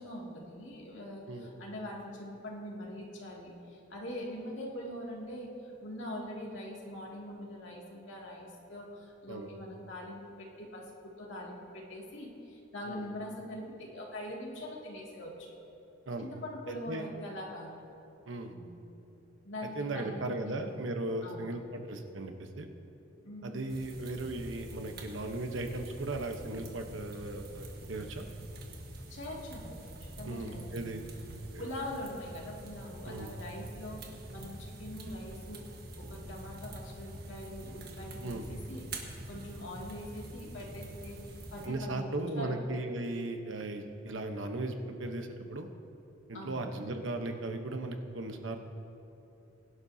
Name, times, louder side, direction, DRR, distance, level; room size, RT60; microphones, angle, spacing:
voice 1, 0.0-5.5 5.8-15.6 16.2-17.7 18.5-18.7 19.4-20.6 21.2-21.5 23.2-23.6 29.1-30.6 31.6-35.6 36.0-42.7 46.3-46.8, left 1 dB, 80° left, -3 dB, 2.4 m, -43 dB
voice 2, 16.7-17.1 18.3-18.5 19.8-22.7 23.4-28.3 30.2-31.1 31.5-31.7 33.1-33.3 38.2-38.5 41.6-45.7 46.3-48.6, right 2 dB, 90° right, 5 dB, 1.0 m, -37 dB
sound 1, 23.7-41.7, right 1 dB, 55° right, 1.5 m, -46 dB
22.5 x 11.5 x 2.8 m, 2.9 s
head